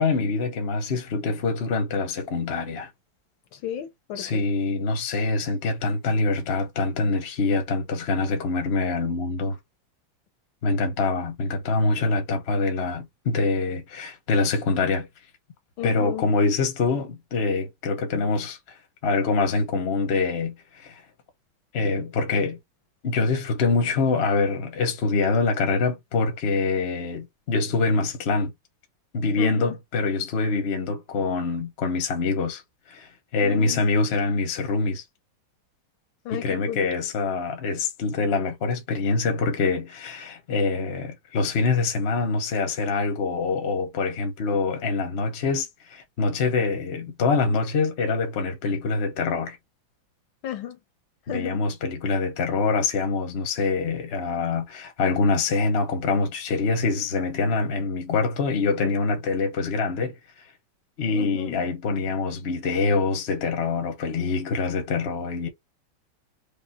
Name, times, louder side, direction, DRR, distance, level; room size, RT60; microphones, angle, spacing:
voice 1, 0.0-2.9 4.2-9.6 10.6-15.1 15.8-18.6 19.0-21.0 21.7-22.6 23.0-28.5 29.1-32.6 32.9-35.0 36.3-49.6 51.3-60.4 61.0-65.5, left 4 dB, 40° left, 1.0 m, -25 dB
voice 2, 3.5-4.4 15.8-16.2 29.4-29.7 33.4-33.8 36.2-36.8 50.4-50.8 51.3-51.6 61.1-61.7, left 10 dB, 75° left, 1.7 m, -33 dB
4.9 x 2.1 x 4.2 m
omnidirectional pair, 2.2 m